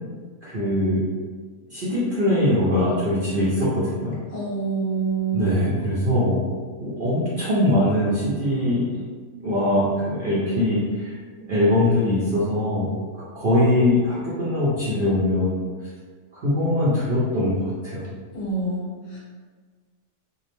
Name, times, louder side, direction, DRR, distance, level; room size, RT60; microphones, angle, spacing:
voice 1, 0.4-1.0 1.7-4.1 5.3-6.4 6.8-8.8 9.4-11.2 11.5-12.9 13.3-15.6 16.4-17.6 17.8-18.0, left 1 dB, 50° right, -11 dB, 0.6 m, -22 dB
voice 2, 4.3-5.7 18.3-19.2, right 4 dB, 65° left, -6 dB, 1.2 m, -27 dB
2.7 x 2.0 x 3.0 m, 1.5 s
omnidirectional pair, 1.6 m